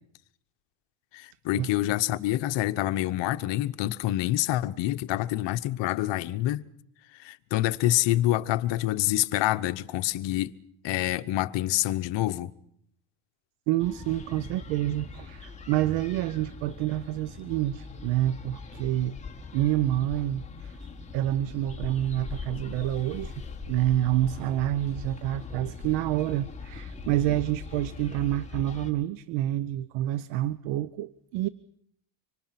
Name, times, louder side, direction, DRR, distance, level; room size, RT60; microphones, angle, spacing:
voice 1, 1.1-6.6 7.1-10.5 10.8-12.5, left 15 dB, 60° left, 1.1 m, -27 dB
voice 2, 13.7-19.2 19.5-20.8 21.1-23.3 23.6-31.5, right 14 dB, 80° right, 0.9 m, -28 dB
sound 1, 13.8-28.9, left 5 dB, 15° left, 2.6 m, -41 dB
26.0 x 25.0 x 5.9 m
cardioid pair, 120°, 49 cm